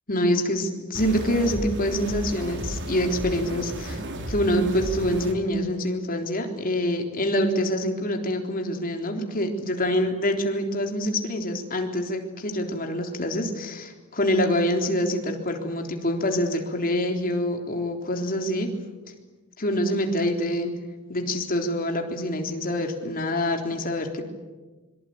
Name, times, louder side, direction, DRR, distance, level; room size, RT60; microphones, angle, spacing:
voice 1, 0.1-18.7 19.6-20.7 21.1-24.2, left 1 dB, 40° left, 3 dB, 3.7 m, -26 dB
sound 1, 0.9-5.3, right 1 dB, 55° right, 3.2 m, -33 dB
25.5 x 23.5 x 9.5 m, 1.2 s
head